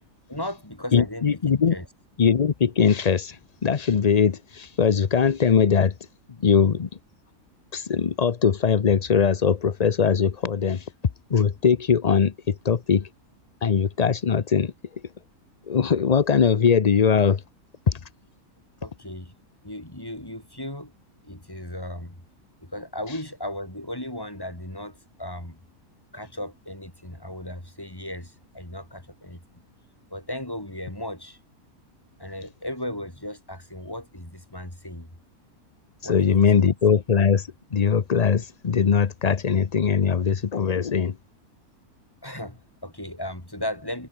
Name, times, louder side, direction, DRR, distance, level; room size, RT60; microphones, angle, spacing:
voice 1, 0.3-1.9 18.8-19.3 19.6-20.9 21.2-22.2 22.6-25.6 26.1-29.6 30.1-31.4 32.2-35.1 36.0-36.7 42.2-44.1, left 1 dB, 15° left, 4.6 m, -36 dB
voice 2, 0.9-1.8 2.2-6.0 6.3-6.9 7.7-10.9 11.3-13.1 13.6-15.0 15.6-17.4 17.9-18.0 23.1-23.2 36.0-41.2, left 6 dB, 40° left, 0.6 m, -21 dB
omnidirectional pair, 1.6 m